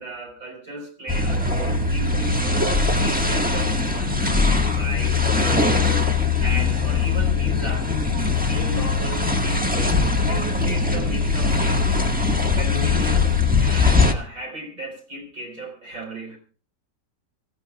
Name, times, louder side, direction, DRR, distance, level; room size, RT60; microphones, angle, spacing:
voice 1, 0.0-6.1 6.4-7.9 8.2-11.9 12.5-13.3 13.6-16.4, right 1 dB, 45° right, 2 dB, 4.9 m, -35 dB
sound 1, 1.1-14.1, left 4 dB, 5° right, 1.2 m, -21 dB
25.5 x 15.0 x 2.3 m, 0.39 s
omnidirectional pair, 2.0 m